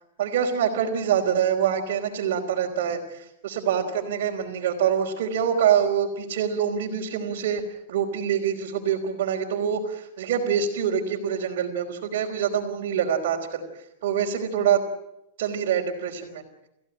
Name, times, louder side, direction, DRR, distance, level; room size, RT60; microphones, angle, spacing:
voice 1, 0.2-7.6 7.9-13.6 14.0-14.8 15.4-16.4, right 8 dB, 70° right, -2 dB, 3.6 m, -25 dB
28.5 x 15.5 x 8.9 m, 0.85 s
supercardioid pair, 135°, 0 cm